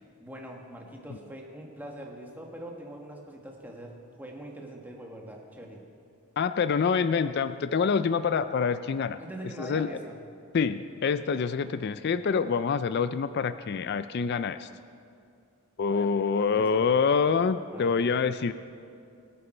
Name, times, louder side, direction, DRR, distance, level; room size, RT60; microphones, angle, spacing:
voice 1, 0.2-5.8 9.2-10.2 15.8-16.8 17.7-18.1, right 1 dB, 10° right, 0 dB, 1.5 m, -43 dB
voice 2, 6.4-9.2 9.6-9.9 10.5-14.7 15.8-18.5, left 5 dB, 50° left, 12 dB, 0.4 m, -26 dB
23.5 x 8.4 x 4.4 m, 2.4 s
head